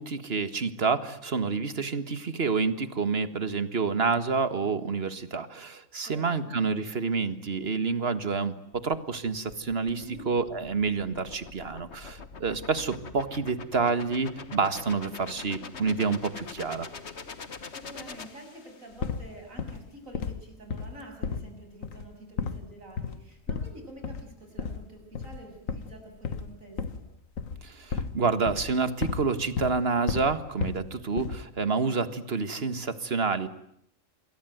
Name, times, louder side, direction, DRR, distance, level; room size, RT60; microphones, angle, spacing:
voice 1, 0.0-16.9 27.6-33.5, right 4 dB, 50° right, 12 dB, 1.9 m, -28 dB
voice 2, 6.1-6.5 9.9-10.3 17.7-27.0, right 1 dB, 85° right, 4 dB, 7.5 m, -47 dB
sound 1, 8.7-19.0, left 5 dB, 55° left, 1.7 m, -44 dB
sound 2, 19.0-19.3 19.6-19.9 20.1-20.4 20.7-21.5 21.8-22.1 22.4-22.7 23.0-23.2 23.5-23.8 24.0-24.3 24.6-24.9 25.1-25.4 25.7-27.1 27.4-28.2 28.5-29.3 29.6-29.8 30.1-30.9 31.2-31.5, left 5 dB, 90° left, 1.8 m, -33 dB
28.5 x 22.5 x 9.3 m, 0.71 s
omnidirectional pair, 1.4 m